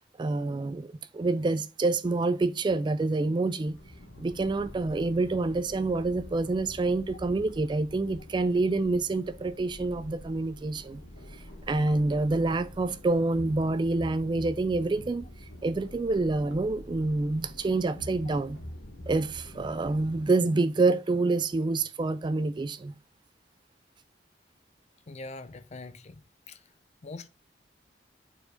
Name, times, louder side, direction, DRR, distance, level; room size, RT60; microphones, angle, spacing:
voice 1, 0.2-3.8 4.2-11.0 11.7-15.3 15.6-18.6 19.1-22.9, right 3 dB, 25° right, 0.3 m, -27 dB
sound 1, 3.6-20.3, equal, 70° left, 1.3 m, -46 dB
voice 2, 25.1-26.6 27.0-27.3, left 3 dB, 40° left, 0.5 m, -43 dB
4.7 x 4.4 x 4.9 m
head